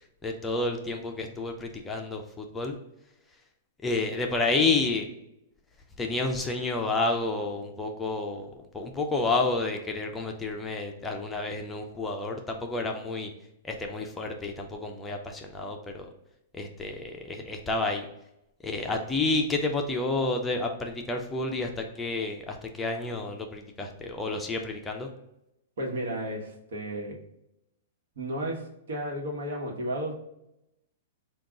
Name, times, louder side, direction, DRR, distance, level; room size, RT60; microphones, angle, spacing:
voice 1, 0.2-2.8 3.8-5.1 6.0-13.3 13.6-16.1 16.5-18.1 18.6-25.1, left 3 dB, 10° left, 2 dB, 0.4 m, -30 dB
voice 2, 25.8-27.2 28.2-30.1, right 1 dB, 75° right, 0 dB, 1.1 m, -33 dB
4.9 x 2.3 x 3.6 m, 0.85 s
hypercardioid pair, 160°, 0 cm